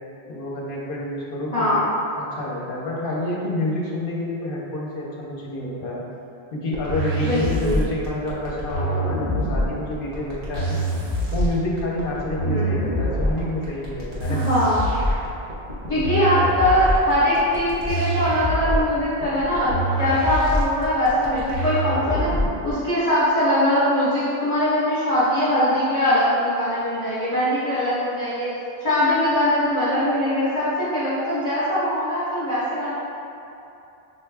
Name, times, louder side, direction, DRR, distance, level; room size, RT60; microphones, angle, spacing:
voice 1, 0.3-1.8 2.2-6.0 6.5-10.8 11.3-14.4, left 1 dB, 60° left, -4 dB, 0.9 m, -28 dB
voice 2, 1.5-1.9 7.2-7.8 12.5-12.8 14.3-14.8 15.9-22.3 22.6-28.5 28.8-32.9, left 1 dB, 40° left, -14 dB, 1.2 m, -21 dB
sound 1, 6.7-22.7, equal, 60° right, 1.1 m, -25 dB
5.8 x 2.2 x 3.3 m, 2.8 s
omnidirectional pair, 1.1 m